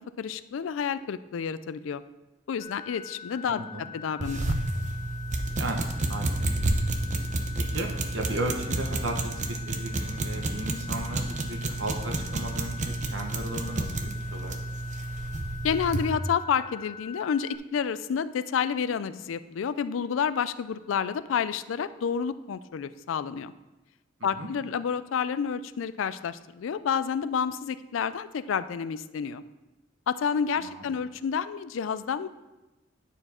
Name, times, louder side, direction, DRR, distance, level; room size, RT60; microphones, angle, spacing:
voice 1, 0.2-2.0 2.5-3.6 3.9-4.5 15.6-23.5 24.2-29.4 30.1-32.3, left 7 dB, 90° left, 14 dB, 0.4 m, -29 dB
sound 1, 2.6-17.6, left 7 dB, 40° left, 0.7 m, -44 dB
voice 2, 3.5-3.9 5.6-5.8 6.1-6.5 7.6-14.6 24.4-24.5 30.6-30.8, right 1 dB, 75° right, 3 dB, 1.0 m, -35 dB
sound 2, 4.2-16.1, right 2 dB, 40° right, 0.7 m, -30 dB
9.7 x 4.6 x 4.3 m, 1.1 s
head